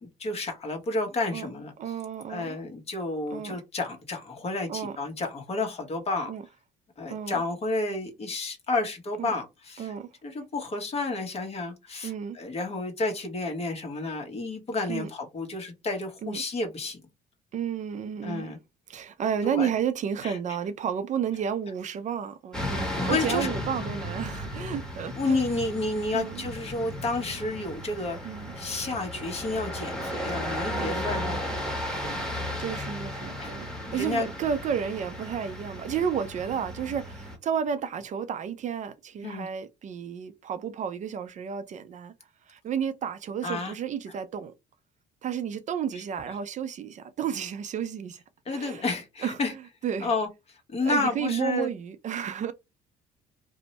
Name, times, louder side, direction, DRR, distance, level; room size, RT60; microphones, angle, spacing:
voice 1, 0.0-1.7 2.3-6.3 7.0-9.9 10.2-17.0 18.2-18.6 19.5-19.7 20.2-20.4 22.7-23.5 25.1-28.2 28.6-31.4 32.0-32.5 33.4-33.6 33.9-34.3 39.2-39.5 43.4-43.7 48.5-49.5 50.0-50.3 50.7-51.7, left 3 dB, 35° left, 1.1 m, -31 dB
voice 2, 1.8-2.6 3.3-3.6 4.7-5.0 6.3-6.4 7.1-7.4 9.2-9.3 9.8-10.1 12.0-12.4 14.9-15.1 16.2-16.4 17.5-18.5 18.9-25.6 26.1-26.5 28.2-28.5 30.7-31.3 32.2-33.7 33.9-42.1 42.5-44.5 45.2-48.2 48.5-48.8 49.2-50.1 50.8-52.5, right 8 dB, 45° right, 0.4 m, -32 dB
sound 1, 22.5-37.4, equal, 5° left, 1.1 m, -35 dB
2.6 x 2.1 x 4.0 m
cardioid pair, 110°, 17 cm